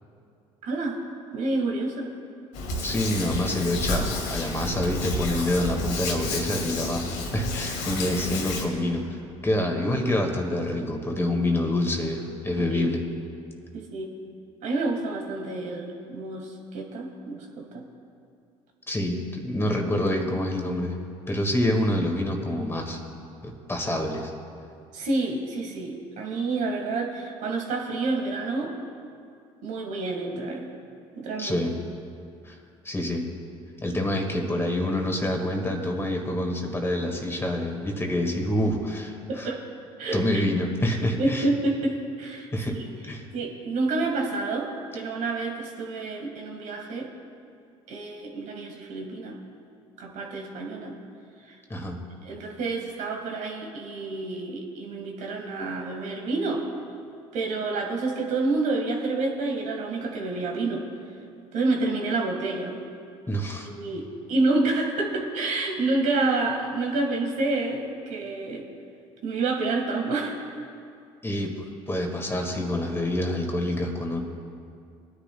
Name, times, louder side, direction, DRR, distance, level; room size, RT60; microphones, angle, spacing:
voice 1, 0.6-1.0 1.3-2.1 12.7-12.9 13.7-14.1 14.6-17.9 24.9-28.7 29.6-30.7 31.2-31.6 39.3-39.6 40.0-40.4 41.2-42.5 42.7-42.9 43.3-47.1 47.9-49.4 50.0-51.0 51.5-51.6 52.2-56.7 57.3-60.9 61.5-62.8 63.6-68.6 69.2-70.5, right 3 dB, 65° right, 1 dB, 1.7 m, -28 dB
Hands, 2.5-8.6, left 2 dB, 80° left, 1.8 m, -30 dB
voice 2, 2.8-9.2 9.4-13.0 18.9-20.9 21.3-23.0 23.4-24.3 31.4-31.7 32.4-32.6 32.8-33.2 33.8-39.5 40.1-41.5 42.5-42.8 43.0-43.2 51.7-52.0 63.3-63.7 71.2-74.2, left 1 dB, 15° left, 1 dB, 1.8 m, -27 dB
21.0 x 10.0 x 2.3 m, 2.4 s
supercardioid pair, 75°, 14 cm